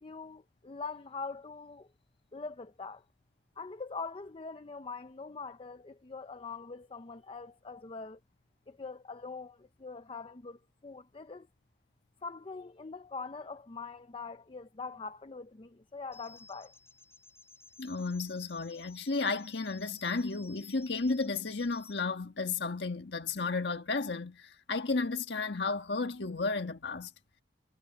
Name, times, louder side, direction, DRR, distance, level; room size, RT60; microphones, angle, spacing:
voice 1, 0.0-1.9 2.3-3.0 3.6-8.2 8.7-11.5 12.2-16.7, left 4 dB, 30° left, 0.6 m, -43 dB
sound 1, 16.1-22.0, left 4 dB, 15° left, 3.7 m, -55 dB
voice 2, 17.8-27.1, left 3 dB, 75° left, 1.4 m, -33 dB
head